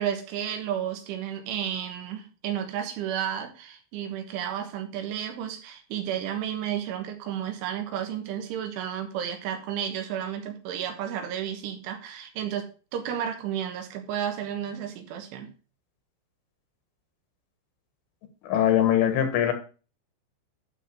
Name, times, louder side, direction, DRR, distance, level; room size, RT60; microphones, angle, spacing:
voice 1, 0.0-12.7 12.9-15.5, right 9 dB, 85° right, 5 dB, 3.8 m, -32 dB
voice 2, 18.4-19.5, left 10 dB, 85° left, 7 dB, 4.0 m, -22 dB
12.0 x 4.1 x 6.0 m, 0.35 s
omnidirectional pair, 5.5 m